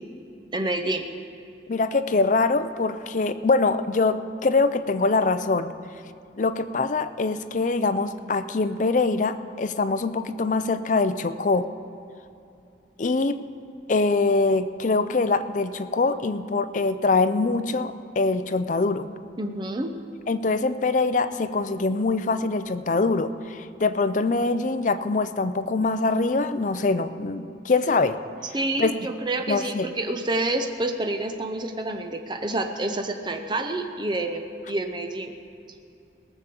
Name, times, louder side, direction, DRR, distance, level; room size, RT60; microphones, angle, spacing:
voice 1, 0.5-1.1 19.4-19.9 28.5-35.3, right 2 dB, 25° right, 5 dB, 0.7 m, -28 dB
voice 2, 1.7-5.7 6.4-11.7 13.0-13.4 13.9-19.1 20.3-28.2 28.8-28.9 29.5-29.9, left 3 dB, 45° left, 11 dB, 0.5 m, -23 dB
18.0 x 7.2 x 6.8 m, 2.6 s
head